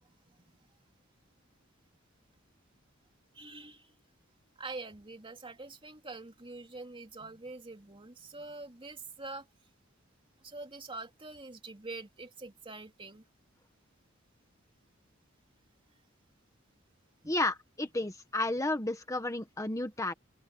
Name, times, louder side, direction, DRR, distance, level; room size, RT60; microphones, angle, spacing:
voice 1, 0.0-0.6 3.3-3.9 4.6-9.5 10.4-13.2 17.2-17.3, right 3 dB, 25° right, 2.9 m, -45 dB
voice 2, 17.3-20.1, left 2 dB, 15° left, 1.3 m, -32 dB
open air
head